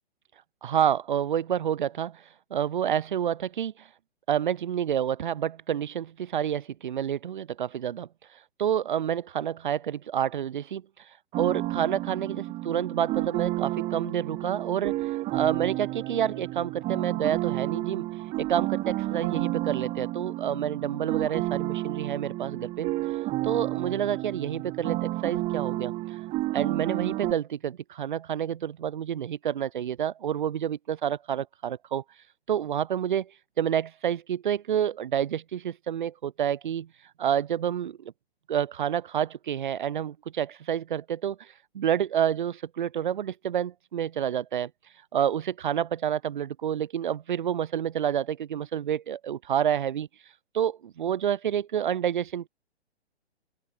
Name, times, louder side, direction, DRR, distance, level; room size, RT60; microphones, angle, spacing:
voice 1, 0.6-2.2 2.5-3.9 4.3-8.1 8.6-10.8 11.4-15.0 15.3-18.1 18.4-22.9 23.4-26.2 26.5-32.0 32.5-33.3 33.6-36.9 37.2-38.1 38.5-44.7 45.1-50.1 50.5-52.5, right 9 dB, 45° right, 1.9 m, -28 dB
sound 1, 11.3-27.3, right 17 dB, 20° right, 1.7 m, -31 dB
open air
figure-of-eight pair, 125°, 33 cm